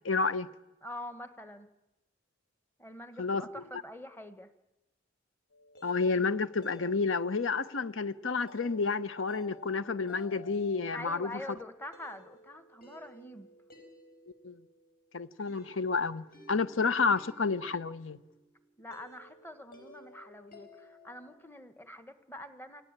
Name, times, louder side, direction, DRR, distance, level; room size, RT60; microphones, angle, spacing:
voice 1, 0.0-0.5 3.2-3.4 5.8-11.3 14.4-14.5 15.1-18.2, left 4 dB, 80° left, 1.0 m, -30 dB
voice 2, 0.8-1.7 2.8-4.5 10.9-13.5 18.8-22.8, left 1 dB, 10° left, 1.4 m, -45 dB
sound 1, 5.5-21.4, left 2 dB, 50° left, 5.6 m, -56 dB
28.5 x 17.0 x 8.9 m
head